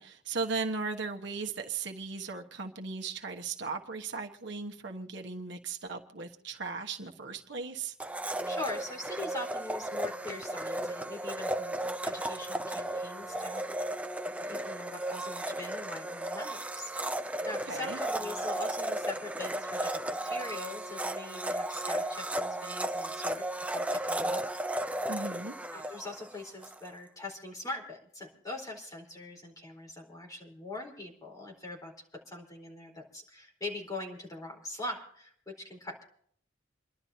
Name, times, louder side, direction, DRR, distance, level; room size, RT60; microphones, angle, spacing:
voice 1, 0.0-7.9 17.7-18.0 25.1-25.6, right 4 dB, 65° right, 3 dB, 1.3 m, -37 dB
Domestic sounds home sounds, 8.0-26.8, right 1 dB, 5° right, 0.5 m, -35 dB
voice 2, 8.4-13.6 14.5-16.9 17.4-23.4 23.7-24.4 25.7-31.9 32.3-36.0, left 2 dB, 20° left, 0 dB, 4.1 m, -42 dB
29.0 x 12.0 x 2.8 m, 0.63 s
head